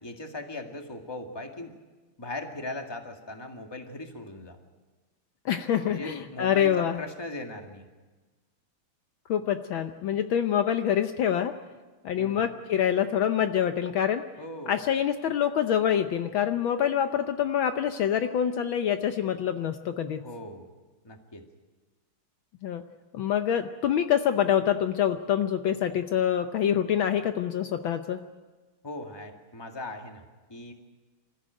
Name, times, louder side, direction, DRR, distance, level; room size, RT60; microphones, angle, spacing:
voice 1, 0.0-1.7 2.2-4.6 5.9-7.9 12.2-12.6 14.4-14.8 20.2-20.7 21.0-21.4 28.8-30.2 30.5-30.7, left 2 dB, 10° left, 3 dB, 1.9 m, -39 dB
voice 2, 5.4-7.0 9.3-11.5 12.0-14.2 14.7-20.2 22.6-22.8 23.1-28.2, left 9 dB, 70° left, 7 dB, 1.6 m, -26 dB
26.5 x 14.5 x 9.3 m, 1.3 s
omnidirectional pair, 2.4 m